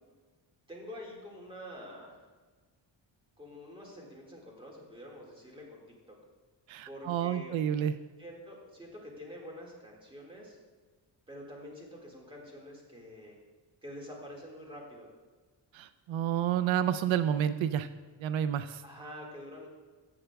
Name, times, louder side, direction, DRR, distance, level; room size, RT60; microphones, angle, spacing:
voice 1, 0.7-2.2 3.4-5.8 6.1-6.2 6.8-7.6 8.2-10.6 11.3-13.4 13.8-15.1 18.8-19.7, equal, 10° right, -3 dB, 1.9 m, -47 dB
voice 2, 6.7-8.0 15.7-17.9 18.2-18.8, right 9 dB, 85° right, 11 dB, 0.5 m, -30 dB
14.5 x 7.7 x 2.3 m, 1.4 s
wide cardioid pair, 150°, 45 cm